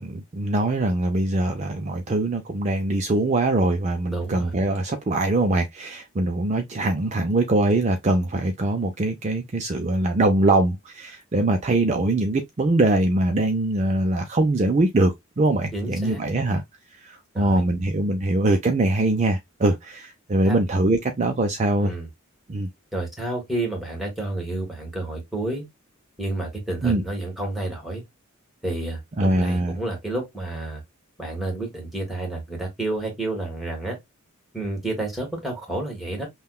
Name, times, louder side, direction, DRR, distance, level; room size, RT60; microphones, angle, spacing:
voice 1, 0.0-16.6 17.0-21.9 22.5-22.7 26.8-27.0 29.2-29.8, right 2 dB, 35° right, 0.4 m, -22 dB
voice 2, 4.1-4.5 15.7-16.2 17.3-17.6 20.4-20.6 21.7-22.1 22.9-25.6 26.2-28.0 28.6-30.8 31.2-34.0 34.5-36.3, right 2 dB, ahead, 1.4 m, -30 dB
5.5 x 2.3 x 2.3 m
head